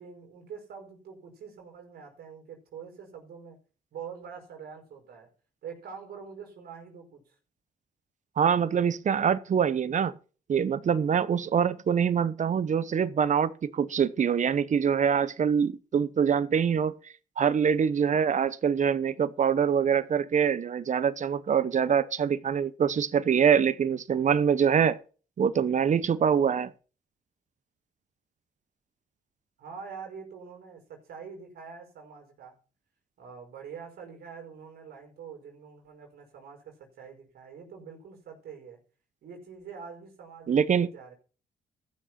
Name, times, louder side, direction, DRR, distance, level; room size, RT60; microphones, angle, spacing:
voice 1, 0.0-3.6 3.9-5.3 5.6-7.4 29.6-32.5 33.2-38.8 39.2-41.1, right 6 dB, 75° right, 5.0 m, -45 dB
voice 2, 8.4-10.1 10.5-17.0 17.4-25.0 25.4-26.7 40.5-40.9, right 7 dB, 50° right, 1.0 m, -24 dB
14.5 x 6.5 x 6.0 m
cardioid pair, 70°, 16 cm